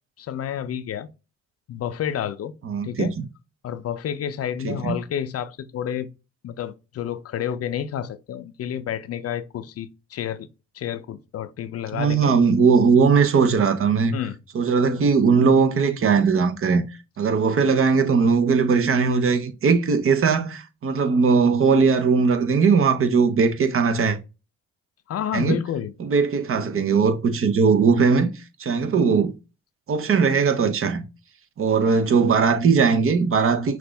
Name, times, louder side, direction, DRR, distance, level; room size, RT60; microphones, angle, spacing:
voice 1, 0.2-1.1 1.7-2.5 2.8-3.1 3.6-6.1 6.4-10.5 10.7-12.3 14.1-14.3 25.1-25.9, left 9 dB, 50° left, 0.5 m, -30 dB
voice 2, 2.6-3.1 4.6-5.0 11.9-14.1 14.5-16.8 17.2-24.2 25.3-25.6 26.0-28.3 28.6-29.3 29.9-31.0 31.6-33.8, right 5 dB, 45° right, 0.8 m, -19 dB
5.8 x 2.5 x 3.4 m
cardioid pair, 90°, 30 cm